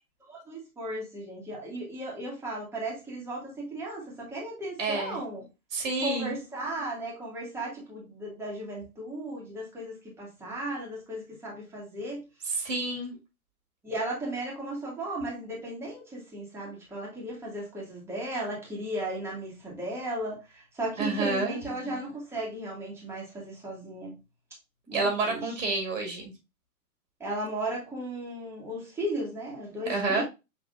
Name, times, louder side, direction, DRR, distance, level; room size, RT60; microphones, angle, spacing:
voice 1, 0.3-5.4 6.0-12.2 13.8-24.1 24.9-25.6 27.2-30.2, right 1 dB, 5° right, 1.7 m, -35 dB
voice 2, 4.8-5.2 5.7-6.4 12.5-13.1 21.0-21.6 24.9-26.3 29.9-30.2, right 3 dB, 60° right, 2.0 m, -29 dB
5.9 x 3.4 x 2.4 m
hypercardioid pair, 130°, 44 cm